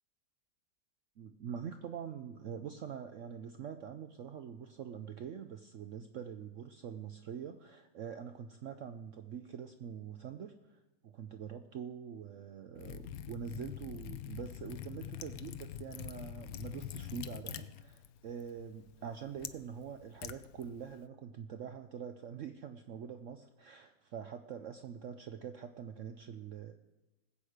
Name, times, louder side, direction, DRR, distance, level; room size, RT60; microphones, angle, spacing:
voice 1, 1.2-26.7, right 8 dB, 80° right, 8 dB, 0.7 m, -45 dB
Liquid, 12.8-21.0, left 11 dB, 70° left, 0.9 m, -45 dB
19.5 x 8.0 x 5.0 m, 1.0 s
omnidirectional pair, 2.0 m